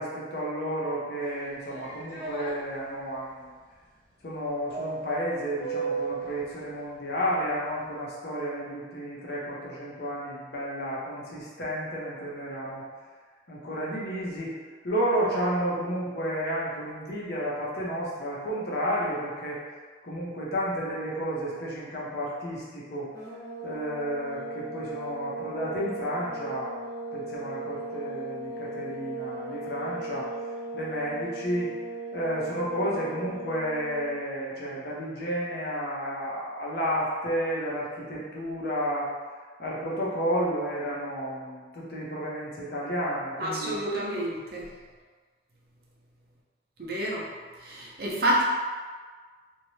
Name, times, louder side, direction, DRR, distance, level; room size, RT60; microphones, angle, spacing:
voice 1, 0.0-3.5 4.2-12.8 13.5-14.6 14.8-19.6 20.0-23.1 23.6-26.8 27.1-30.3 30.7-31.7 32.1-39.1 39.6-43.8, equal, 60° left, -6 dB, 0.7 m, -31 dB
sound 1, 1.3-2.5 4.7-6.3, right 4 dB, 85° left, 1.2 m, -34 dB
sound 2, 23.1-34.2, right 1 dB, 20° left, 0.6 m, -38 dB
voice 2, 43.4-44.7 46.8-47.2 47.6-48.4, right 1 dB, 55° right, -4 dB, 0.5 m, -28 dB
2.6 x 2.1 x 3.1 m, 1.5 s
head